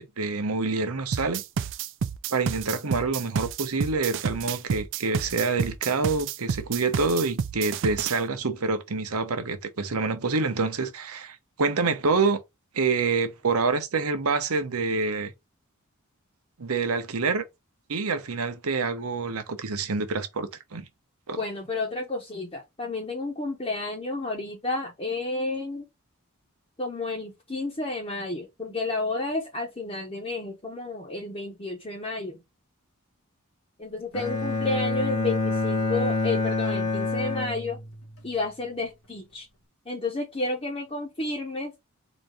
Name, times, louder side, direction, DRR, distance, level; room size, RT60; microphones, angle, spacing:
voice 1, 0.0-1.4 2.3-12.4 12.7-15.3 16.6-17.4 17.9-20.9 21.3-21.4, right 4 dB, 85° right, 0.9 m, -27 dB
sound 1, 1.1-8.2, right 6 dB, 60° right, 0.4 m, -30 dB
voice 2, 21.4-25.8 26.8-32.4 33.8-37.8 38.2-39.5 39.8-41.7, left 2 dB, 25° left, 1.1 m, -31 dB
Bowed string instrument, 34.1-38.2, left 2 dB, 85° left, 1.7 m, -27 dB
4.1 x 2.6 x 4.8 m
head